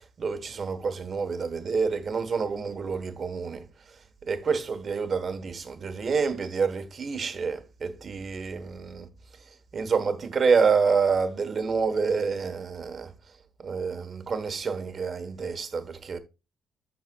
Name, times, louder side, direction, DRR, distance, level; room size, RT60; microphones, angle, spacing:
voice 1, 0.2-3.6 4.3-9.1 9.7-13.1 13.6-16.2, right 5 dB, 45° right, 1.0 m, -27 dB
12.0 x 4.1 x 2.2 m
cardioid pair, 90°, 0 cm